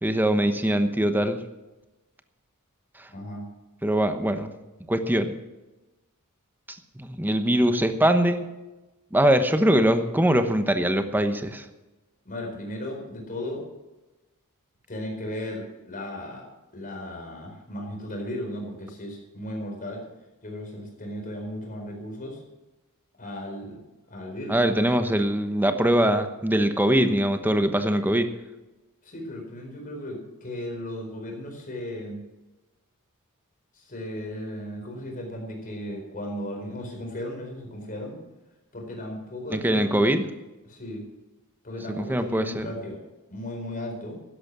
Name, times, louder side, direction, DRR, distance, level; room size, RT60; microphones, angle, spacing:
voice 1, 0.0-1.4 3.0-3.1 3.8-4.5 4.9-5.3 6.7-8.5 9.1-11.7 24.5-28.3 39.5-40.2 41.9-42.7, right 1 dB, 10° right, 8 dB, 1.0 m, -22 dB
voice 2, 3.1-3.5 12.2-13.6 14.9-16.5 16.7-20.0 20.4-22.4 23.2-23.8 24.1-24.6 29.0-32.2 33.7-38.2 38.7-40.1 40.6-41.0 41.6-43.0 43.3-44.2, left 1 dB, 40° left, 1 dB, 4.4 m, -36 dB
12.5 x 11.0 x 6.2 m, 1.1 s
head